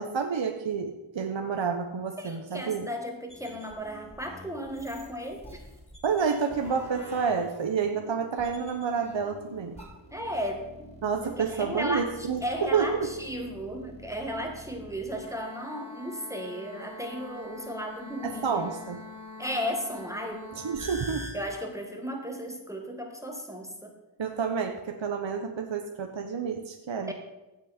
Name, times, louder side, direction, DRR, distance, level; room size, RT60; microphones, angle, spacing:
voice 1, 0.0-2.9 6.0-9.8 11.0-13.1 18.2-19.0 20.5-21.2 24.2-27.1, right 6 dB, 60° right, 5 dB, 1.0 m, -29 dB
voice 2, 2.2-5.6 10.1-10.9 11.2-18.7 19.4-20.5 21.3-23.9 27.1-27.2, equal, 5° right, 2 dB, 1.7 m, -35 dB
sound 1, 3.3-21.3, left 1 dB, 10° left, 3.8 m, -46 dB
16.5 x 6.2 x 4.3 m, 1.0 s
wide cardioid pair, 55°, 50 cm